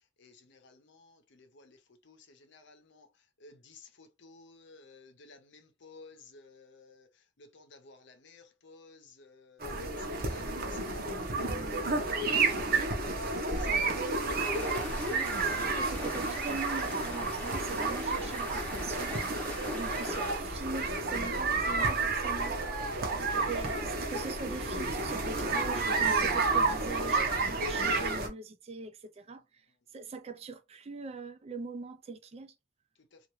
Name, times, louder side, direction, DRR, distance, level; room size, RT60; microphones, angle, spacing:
voice 1, 0.2-1.8 2.0-3.1 3.4-7.1 7.4-9.6 10.0-10.4 10.7-12.0 12.2-13.0 13.5-13.9 33.1-33.2, left 4 dB, 65° left, 0.7 m, -56 dB
sound 1, 9.6-28.3, right 3 dB, 50° right, 0.8 m, -31 dB
voice 2, 11.4-11.9 15.1-22.6 23.3-29.4 29.9-32.5, right 4 dB, 35° right, 0.4 m, -42 dB
sound 2, 14.4-20.4, left 1 dB, 10° left, 0.8 m, -43 dB
2.9 x 2.4 x 3.0 m
head